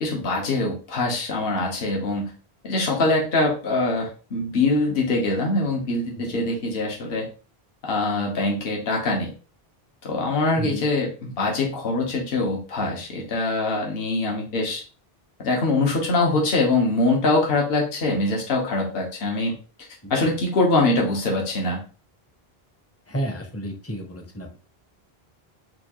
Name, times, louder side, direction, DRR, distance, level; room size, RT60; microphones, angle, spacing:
voice 1, 0.0-2.3 2.6-7.3 7.8-9.3 10.0-14.8 15.4-19.5 20.1-21.8, left 2 dB, 70° left, -1 dB, 1.1 m, -23 dB
voice 2, 20.0-20.4 23.1-24.6, equal, 20° left, 3 dB, 0.5 m, -32 dB
4.4 x 2.3 x 2.8 m, 0.37 s
omnidirectional pair, 1.0 m